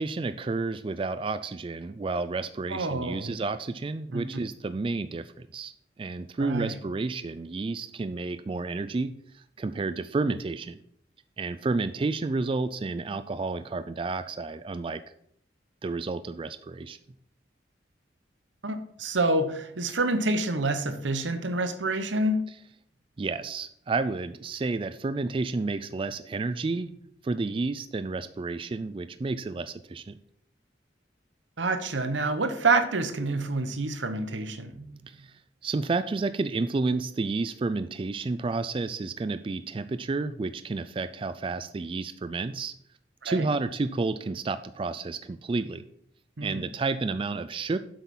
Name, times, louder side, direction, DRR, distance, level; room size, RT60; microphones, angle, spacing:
voice 1, 0.0-5.7 6.0-10.8 11.4-15.0 15.8-17.0 23.2-26.9 27.2-30.2 34.7-42.7 43.2-45.8 46.4-47.8, right 3 dB, 30° right, 12 dB, 0.3 m, -31 dB
voice 2, 2.7-3.3 4.1-4.3 6.4-6.7 18.6-22.4 31.6-34.7 43.2-43.5 46.4-46.6, right 2 dB, 90° right, 9 dB, 1.0 m, -27 dB
8.0 x 6.3 x 5.4 m, 0.69 s
head